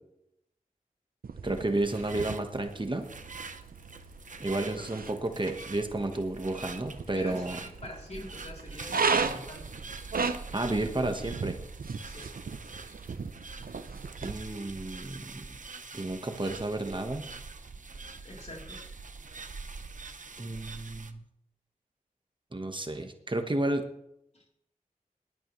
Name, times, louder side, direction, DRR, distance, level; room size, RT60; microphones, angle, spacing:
sound 1, 1.2-14.3, right 5 dB, 85° right, 0.8 m, -36 dB
voice 1, 1.4-3.1 4.4-7.6 10.5-11.6 14.2-15.6 15.9-17.2 20.4-21.2 22.5-23.9, right 2 dB, 35° right, 5 dB, 1.4 m, -32 dB
sound 2, 1.4-21.1, right 4 dB, 60° right, 0.9 m, -45 dB
voice 2, 7.1-9.6 12.0-12.3 18.2-18.8 24.3-24.4, left 1 dB, 50° left, -1 dB, 3.7 m, -44 dB
19.0 x 11.5 x 3.2 m, 0.80 s
wide cardioid pair, 60°, 15 cm